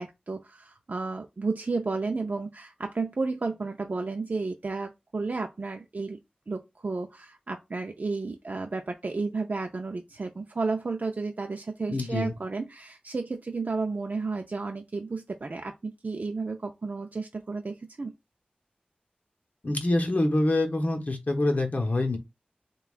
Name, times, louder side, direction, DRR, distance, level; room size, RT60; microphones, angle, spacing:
voice 1, 0.0-6.2 6.5-18.1, right 3 dB, 60° right, 0.4 m, -32 dB
voice 2, 11.9-12.3 19.6-22.2, left 2 dB, 55° left, 1.0 m, -25 dB
6.8 x 2.3 x 2.4 m
wide cardioid pair, 65°, 3 cm